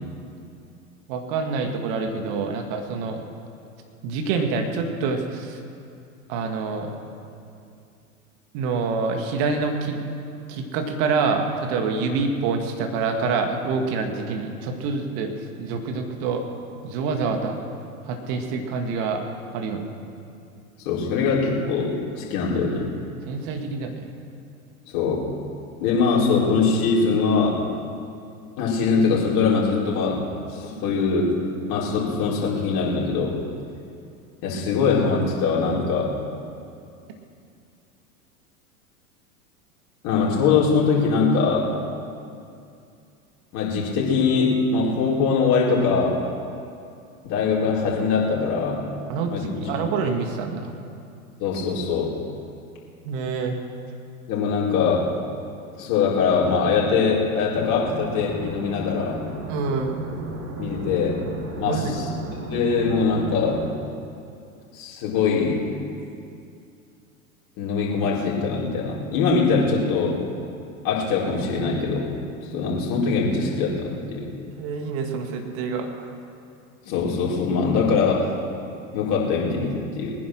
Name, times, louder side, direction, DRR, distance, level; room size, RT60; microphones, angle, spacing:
voice 1, 1.1-3.2 4.0-5.6 6.3-7.0 8.5-10.0 10.5-15.3 15.6-16.4 16.8-17.6 18.1-19.2 19.5-19.9 23.2-24.0 49.1-50.7 53.0-53.6 59.5-59.9 61.6-62.1 74.6-76.1, right 4 dB, 50° right, 4 dB, 2.3 m, -26 dB
voice 2, 20.8-22.9 24.9-25.3 25.8-27.6 28.6-30.2 30.5-31.3 31.7-33.3 34.4-36.1 40.0-41.7 43.5-46.2 47.2-48.9 49.3-49.7 51.4-52.1 54.3-55.1 55.8-59.2 60.6-61.2 61.6-62.0 62.4-63.6 64.7-65.6 67.6-70.2 70.8-72.2 72.5-74.3 76.8-78.3 78.9-80.1, left 5 dB, 45° left, -4 dB, 4.5 m, -22 dB
sound 1, 57.5-63.7, right 1 dB, 35° right, 2.1 m, -34 dB
20.5 x 10.0 x 6.3 m, 2.5 s
hypercardioid pair, 95°, 44 cm